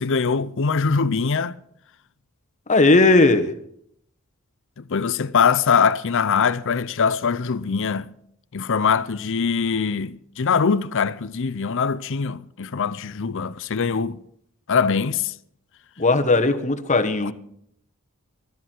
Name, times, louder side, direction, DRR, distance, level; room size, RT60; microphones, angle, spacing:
voice 1, 0.0-1.6 4.8-8.1 8.5-14.2 14.7-15.3 17.2-17.3, left 5 dB, 60° left, 0.6 m, -22 dB
voice 2, 2.7-3.5 16.0-17.3, left 2 dB, 35° left, 1.3 m, -17 dB
24.0 x 12.0 x 4.6 m
head